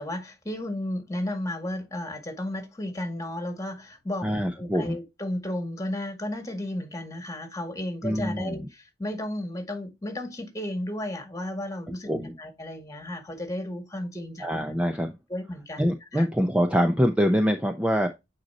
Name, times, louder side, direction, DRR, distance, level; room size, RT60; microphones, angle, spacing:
voice 1, 0.0-4.2 4.6-12.1 12.4-14.5 15.3-15.9 16.1-16.2, left 1 dB, 20° left, 2.0 m, -33 dB
voice 2, 4.2-5.0 8.0-8.7 12.1-12.3 14.4-15.1 15.8-18.1, equal, 5° right, 0.7 m, -24 dB
9.4 x 4.3 x 2.8 m
head